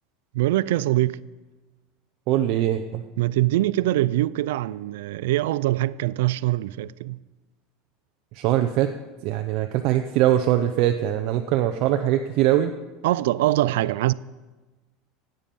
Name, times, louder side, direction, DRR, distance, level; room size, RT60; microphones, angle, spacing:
voice 1, 0.3-1.2 3.2-7.2 13.0-14.1, right 16 dB, 85° right, 0.4 m, -23 dB
voice 2, 2.3-3.0 8.3-8.9 9.2-12.7, right 12 dB, 45° right, 0.6 m, -22 dB
24.5 x 9.0 x 5.4 m
supercardioid pair, 180°, 0 cm